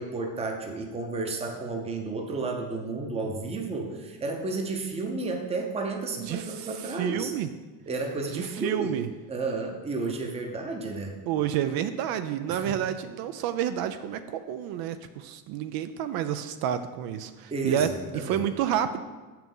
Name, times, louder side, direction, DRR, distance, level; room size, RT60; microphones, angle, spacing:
voice 1, 0.0-7.3 7.9-8.9 9.3-11.2 12.5-12.8 17.5-18.5, right 3 dB, 15° right, 2 dB, 0.7 m, -32 dB
voice 2, 6.3-7.5 8.3-9.1 11.3-17.9 18.1-19.0, right 10 dB, 50° right, 11 dB, 0.5 m, -30 dB
7.4 x 5.8 x 5.4 m, 1.3 s
cardioid pair, 150°, 46 cm